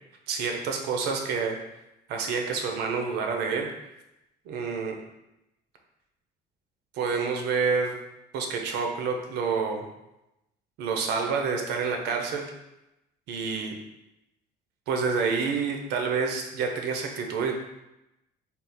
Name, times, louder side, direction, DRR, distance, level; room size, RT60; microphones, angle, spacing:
voice 1, 0.3-1.6 2.1-3.7 4.5-4.9 6.9-7.9 8.3-9.8 10.8-12.5 13.3-13.7 14.9-17.5, right 5 dB, 85° right, 3 dB, 0.7 m, -28 dB
3.5 x 2.4 x 4.2 m, 0.92 s
cardioid pair, 110°, 17 cm